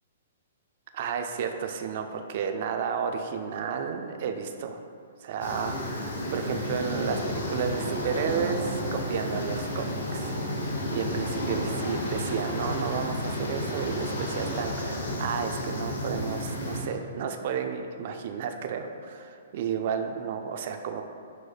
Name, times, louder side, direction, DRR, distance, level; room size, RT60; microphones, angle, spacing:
voice 1, 0.9-4.8 5.2-10.4 10.9-21.0, right 7 dB, 50° right, 6 dB, 0.4 m, -32 dB
sound 1, 5.4-16.8, left 1 dB, 75° left, 0.9 m, -31 dB
6.3 x 3.0 x 2.3 m, 2.3 s
hypercardioid pair, 145°, 0 cm